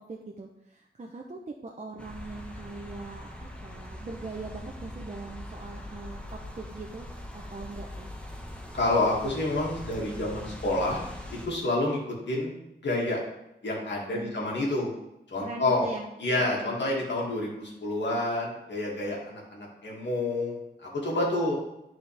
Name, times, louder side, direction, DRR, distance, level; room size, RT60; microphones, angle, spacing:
voice 1, 0.0-8.1 14.1-14.4 15.4-16.1 16.4-16.8, right 3 dB, 40° right, 0 dB, 0.7 m, -41 dB
sound 1, 2.0-11.5, left 1 dB, 5° left, 1.0 m, -42 dB
voice 2, 8.7-11.0 11.3-13.2 13.6-14.9 15.3-15.9 16.2-21.6, left 2 dB, 85° left, -3 dB, 2.1 m, -28 dB
11.0 x 4.3 x 3.4 m, 0.87 s
wide cardioid pair, 90°, 18 cm